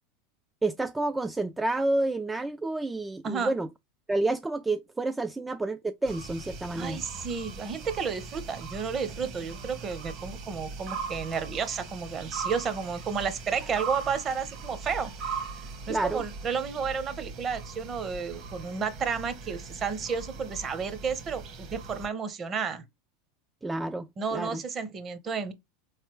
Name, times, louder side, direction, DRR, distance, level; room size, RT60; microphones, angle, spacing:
voice 1, 0.6-3.7 4.1-7.0 15.9-16.2 23.6-24.6, right 2 dB, 10° right, 0.3 m, -29 dB
sound 1, 6.0-22.1, right 4 dB, 50° right, 1.3 m, -40 dB
voice 2, 6.7-15.5 15.9-22.8 24.2-25.5, right 6 dB, 30° right, 0.8 m, -32 dB
4.2 x 3.2 x 3.0 m
hypercardioid pair, 100°, 0 cm